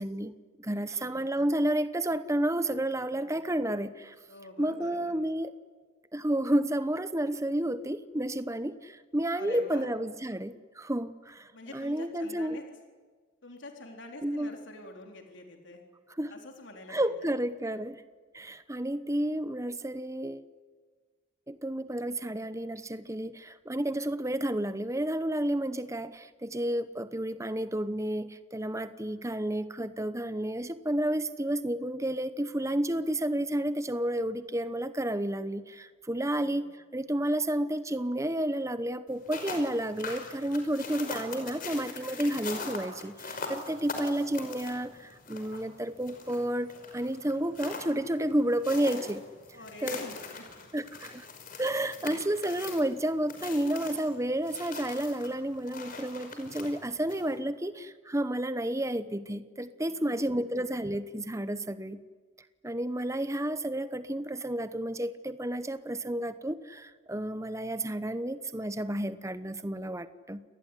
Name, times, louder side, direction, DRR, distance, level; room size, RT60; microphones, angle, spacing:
voice 1, 0.0-4.1 4.6-5.5 6.1-12.6 14.2-14.5 16.2-16.3 16.9-18.0 18.3-20.5 21.5-49.2 49.8-50.0 50.7-51.3 51.6-62.0 62.6-70.4, right 1 dB, 15° right, 12 dB, 0.9 m, -31 dB
voice 2, 0.8-1.5 3.1-3.4 4.3-5.2 9.4-9.9 11.5-12.6 13.4-15.8 16.3-17.3 36.2-36.7 49.5-51.0 59.9-60.4, left 2 dB, 60° left, 3 dB, 4.0 m, -47 dB
sound 1, 39.1-57.4, left 4 dB, 40° left, 5.3 m, -42 dB
28.5 x 20.5 x 10.0 m, 1.5 s
head